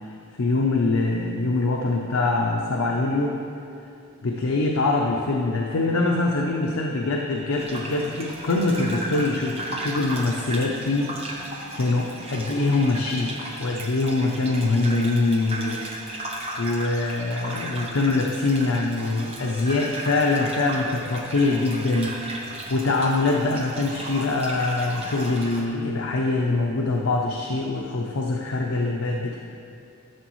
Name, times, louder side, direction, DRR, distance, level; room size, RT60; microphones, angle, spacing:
voice 1, 0.4-3.3 4.2-11.1 11.8-15.8 16.6-29.4, left 2 dB, 65° left, 0 dB, 0.6 m, -24 dB
sound 1, 7.5-25.6, right 1 dB, 25° right, 0.8 m, -35 dB
12.5 x 7.0 x 3.1 m, 2.6 s
head